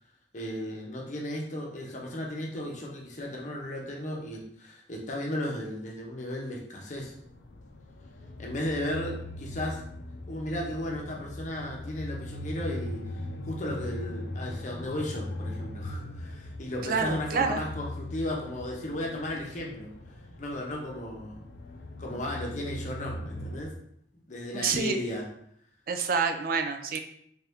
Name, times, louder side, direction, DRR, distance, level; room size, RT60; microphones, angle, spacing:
voice 1, 0.3-7.1 8.4-9.8 10.3-19.9 20.4-21.4 22.0-23.7 24.3-25.3, left 1 dB, 40° left, -1 dB, 0.7 m, -35 dB
sound 1, 6.9-23.6, left 1 dB, 65° left, 0.4 m, -40 dB
voice 2, 16.8-17.6 24.5-25.0 25.9-27.0, right 5 dB, 50° right, 6 dB, 0.3 m, -27 dB
3.5 x 2.8 x 3.5 m, 0.70 s
head